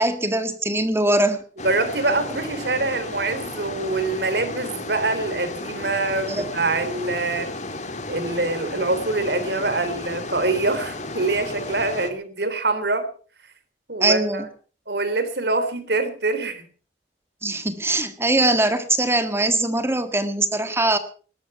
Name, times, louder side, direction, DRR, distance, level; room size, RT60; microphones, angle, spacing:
voice 1, 0.0-1.4 6.3-6.4 14.0-14.5 17.4-21.0, right 2 dB, 15° right, 9 dB, 1.6 m, -21 dB
sound 1, 1.6-12.1, left 2 dB, 40° left, 2.5 m, -33 dB
voice 2, 1.6-7.5 8.1-13.1 13.9-14.5 14.9-16.6, right 3 dB, 70° right, 10 dB, 3.5 m, -24 dB
20.0 x 12.0 x 5.8 m, 0.41 s
head